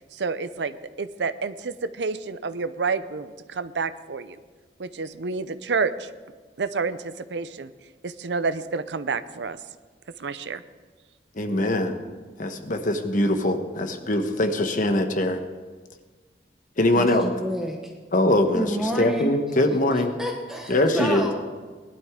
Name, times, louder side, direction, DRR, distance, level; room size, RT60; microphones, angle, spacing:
voice 1, 0.1-4.4 4.8-6.1 6.6-7.7 8.0-9.6 10.2-10.6, right 4 dB, 80° right, 13 dB, 0.6 m, -29 dB
voice 2, 11.3-12.0 12.4-15.4 16.8-17.3 18.1-20.1 20.7-21.3, left 1 dB, 50° left, 6 dB, 1.2 m, -22 dB
voice 3, 16.9-17.9 18.5-19.3 19.9-21.4, equal, 5° right, 0 dB, 1.0 m, -29 dB
19.5 x 11.5 x 3.7 m, 1.4 s
head